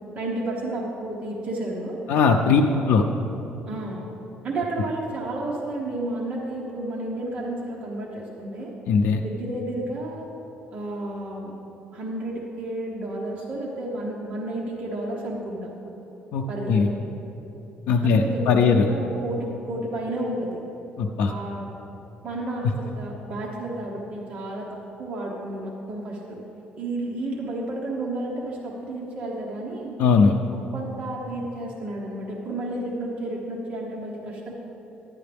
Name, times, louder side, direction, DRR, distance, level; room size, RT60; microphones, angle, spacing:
voice 1, 0.1-2.0 2.5-2.8 3.7-4.0 4.4-8.7 9.2-10.3 10.7-11.5 11.9-15.7 16.5-16.9 18.0-20.6 21.3-21.7 22.2-26.4 26.8-30.0 30.5-34.5, right 1 dB, 35° right, -3 dB, 1.1 m, -31 dB
voice 2, 2.1-2.6 2.9-3.0 8.9-9.2 16.3-16.9 17.9-18.9 21.0-21.3 30.0-30.3, left 5 dB, 75° left, 2 dB, 0.5 m, -19 dB
10.5 x 10.5 x 3.4 m, 3.0 s
cardioid pair, 165°, 4 cm